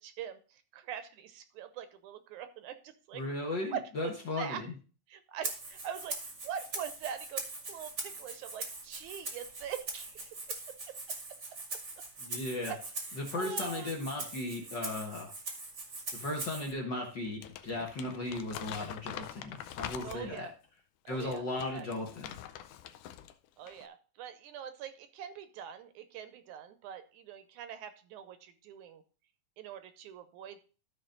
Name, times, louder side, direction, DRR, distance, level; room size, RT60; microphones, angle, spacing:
voice 1, 0.0-3.2 3.7-4.6 5.1-7.4 7.7-10.6 10.9-11.0 12.7-12.8 13.1-13.9 20.0-20.5 21.1-21.9 23.6-29.0 29.6-30.6, right 8 dB, 75° right, 10 dB, 2.1 m, -43 dB
voice 2, 3.1-4.7 12.2-12.7 13.1-15.3 16.1-20.5 21.1-22.2, left 2 dB, 50° left, 0 dB, 1.6 m, -36 dB
Rattle (instrument), 5.4-16.7, right 3 dB, 35° right, 1.2 m, -41 dB
Crumpling crinkling, 17.2-20.5 21.1-23.3 23.6-23.9, left 11 dB, 85° left, 2.2 m, -45 dB
13.0 x 4.8 x 3.8 m, 0.36 s
omnidirectional pair, 3.7 m